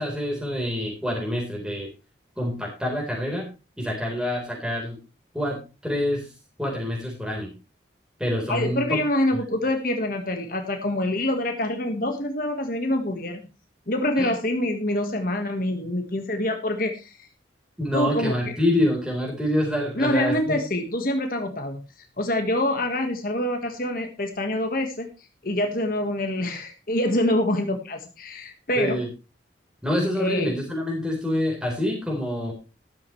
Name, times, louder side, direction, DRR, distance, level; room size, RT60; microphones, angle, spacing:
voice 1, 0.0-1.9 2.4-3.5 3.8-5.0 5.3-5.6 5.8-6.2 6.6-7.5 8.2-9.0 14.2-14.3 17.8-20.6 28.8-29.1 29.8-32.5, left 1 dB, 5° right, -2 dB, 4.1 m, -26 dB
voice 2, 8.5-13.4 13.9-17.2 17.9-18.5 20.0-21.8 22.2-25.1 25.4-29.0 30.2-30.5, left 1 dB, 50° left, 4 dB, 1.6 m, -26 dB
13.5 x 12.5 x 3.2 m, 0.30 s
head